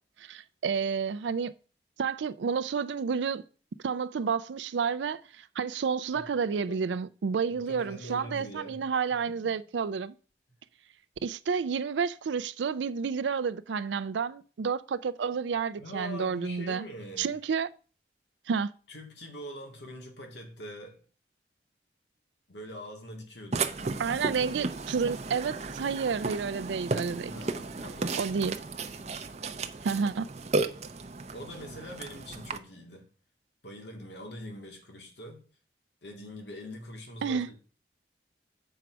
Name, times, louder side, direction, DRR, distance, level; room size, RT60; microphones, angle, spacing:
voice 1, 0.2-1.5 2.0-3.4 3.8-10.1 11.2-16.9 17.2-17.7 18.5-18.7 24.0-27.3 28.2-28.6 29.8-30.3 37.2-37.5, right 6 dB, 85° right, 0.4 m, -30 dB
voice 2, 7.7-8.9 9.3-9.6 15.8-17.3 18.9-21.0 22.5-23.8 27.2-28.2 31.3-33.1 33.6-35.4 36.0-37.5, equal, 75° left, 1.9 m, -43 dB
Burping eructation, 23.5-32.6, right 3 dB, 40° right, 0.6 m, -34 dB
8.0 x 4.7 x 6.1 m
head